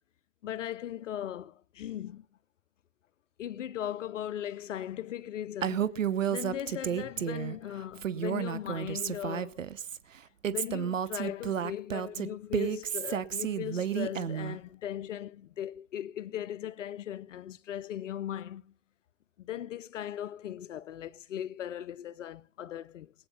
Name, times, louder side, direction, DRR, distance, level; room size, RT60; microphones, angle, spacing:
voice 1, 0.4-2.3 3.4-5.9 6.3-9.6 10.5-18.7 19.4-23.1, left 11 dB, 75° left, 0.7 m, -38 dB
Female speech woman speaking, 5.6-7.6 8.0-10.0 10.4-14.6, right 9 dB, 85° right, 1.0 m, -31 dB
21.0 x 8.8 x 5.5 m
hypercardioid pair, 110°, 38 cm